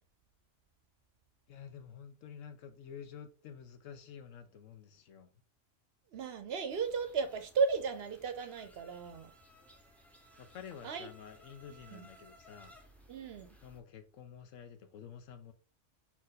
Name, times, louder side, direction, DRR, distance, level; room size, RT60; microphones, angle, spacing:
voice 1, 1.5-5.3 10.4-12.8 13.6-15.5, left 7 dB, 85° left, 1.1 m, -50 dB
voice 2, 6.1-9.3 10.8-11.1 11.9-12.1 13.1-13.6, right 5 dB, 60° right, 0.8 m, -35 dB
sound 1, 6.7-13.8, equal, ahead, 0.5 m, -60 dB
4.3 x 2.9 x 3.9 m
omnidirectional pair, 1.3 m